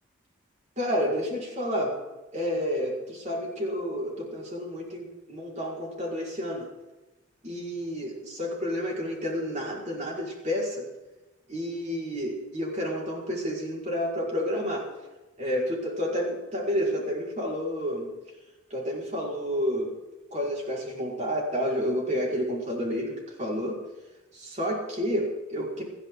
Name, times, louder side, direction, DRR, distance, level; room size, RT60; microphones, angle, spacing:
voice 1, 0.8-2.0 2.3-6.7 7.4-10.9 11.5-14.9 15.4-18.1 18.7-19.9 20.3-23.8 24.3-25.8, equal, 35° right, -2 dB, 5.4 m, -30 dB
27.5 x 11.5 x 4.0 m, 1.1 s
head